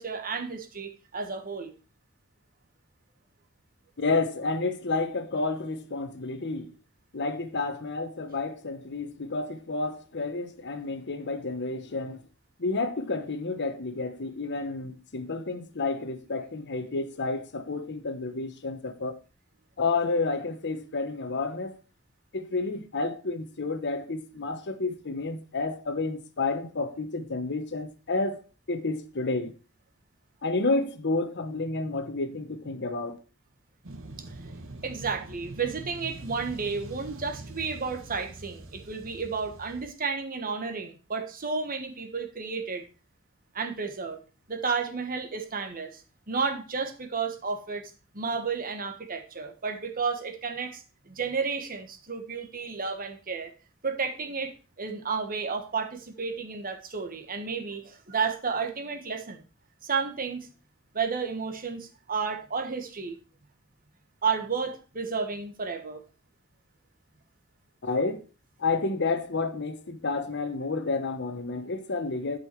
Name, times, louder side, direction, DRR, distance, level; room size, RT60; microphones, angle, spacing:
voice 1, 0.0-1.7 34.8-42.8 43.5-44.2 44.5-46.0 46.3-53.5 53.8-59.4 59.8-60.5 60.9-63.1 64.2-66.0, right 5 dB, 40° right, 1.4 m, -32 dB
voice 2, 4.0-6.7 7.1-12.2 12.6-19.1 19.8-21.8 22.3-28.4 28.7-29.5 30.4-33.2 67.8-68.2 68.6-72.4, left 3 dB, 55° left, 1.0 m, -30 dB
sound 1, 33.8-39.9, right 2 dB, 65° right, 1.2 m, -43 dB
11.5 x 5.5 x 4.6 m
head